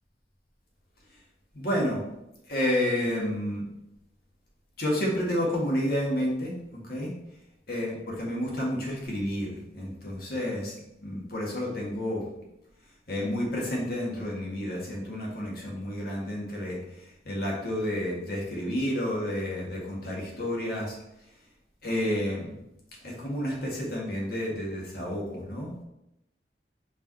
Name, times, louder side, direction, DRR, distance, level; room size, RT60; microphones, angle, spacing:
voice 1, 1.5-2.0 2.5-3.6 4.8-7.1 7.7-10.7 11.0-12.2 13.1-16.8 17.3-21.0 21.8-22.6 23.0-25.8, left 1 dB, 55° left, -3 dB, 1.9 m, -30 dB
5.3 x 4.8 x 4.1 m, 0.87 s
head